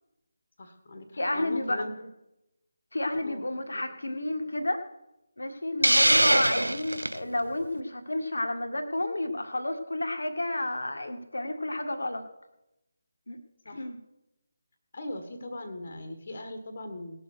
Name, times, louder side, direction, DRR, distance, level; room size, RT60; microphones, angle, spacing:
voice 1, 0.6-2.1 3.2-3.5 3.7-3.8 6.0-6.2 13.6-13.9 14.9-17.2, left 1 dB, 45° left, 6 dB, 1.6 m, -40 dB
voice 2, 1.2-1.9 2.9-4.8 5.4-12.2 13.3-13.4 13.7-14.0, left 1 dB, 70° left, 6 dB, 1.8 m, -31 dB
Hiss, 5.8-7.2, right 1 dB, 80° right, 0.4 m, -22 dB
18.5 x 7.1 x 6.3 m, 0.92 s
figure-of-eight pair, 155°, 0 cm